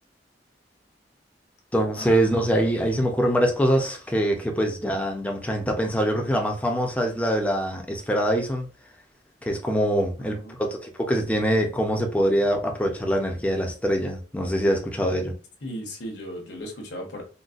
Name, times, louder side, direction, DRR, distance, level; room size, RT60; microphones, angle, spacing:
voice 1, 1.7-8.7 9.4-15.3, equal, 10° left, 0.5 m, -24 dB
voice 2, 10.2-10.6 15.6-17.2, equal, 75° left, 0.9 m, -36 dB
3.9 x 2.1 x 2.4 m
head